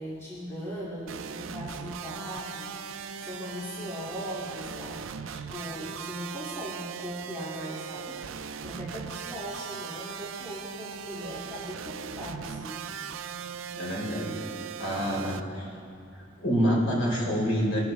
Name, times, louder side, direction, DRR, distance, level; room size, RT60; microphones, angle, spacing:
voice 1, 0.0-8.3 8.6-12.8, equal, 15° left, -9 dB, 2.3 m, -39 dB
sound 1, 1.1-15.4, right 7 dB, 80° right, 0.5 m, -39 dB
voice 2, 13.7-14.4 14.8-15.7 16.4-17.8, equal, 85° left, -3 dB, 3.8 m, -27 dB
22.5 x 12.0 x 3.3 m, 2.6 s
head